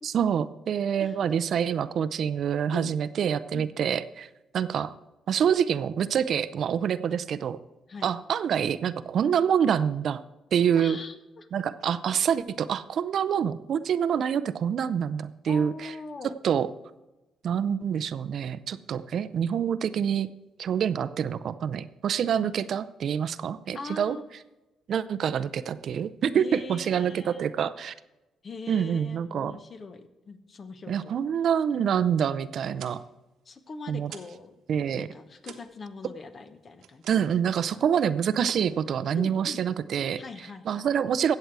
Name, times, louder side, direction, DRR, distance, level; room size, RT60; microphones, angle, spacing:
voice 1, 0.0-4.3 4.5-4.9 5.3-7.6 8.0-10.2 10.5-11.0 11.5-15.9 16.4-16.7 17.4-20.3 20.6-24.2 24.9-27.9 28.7-29.6 30.9-33.0 33.9-34.1 34.7-35.1 37.1-40.2 40.7-41.3, right 8 dB, 60° right, 15 dB, 0.5 m, -26 dB
voice 2, 3.5-4.0 7.9-8.1 10.7-11.5 15.5-16.3 22.4-22.5 23.7-24.3 26.3-27.4 28.4-31.2 33.4-34.6 35.0-37.1 37.7-37.8 39.1-39.6 40.2-40.9, left 4 dB, 40° left, 10 dB, 1.1 m, -42 dB
sound 1, 32.7-34.5 34.7-37.5 37.8-38.1 38.4-39.5, right 8 dB, 80° right, 1.1 m, -47 dB
14.0 x 7.9 x 4.7 m, 1.0 s
cardioid pair, 90°, 0 cm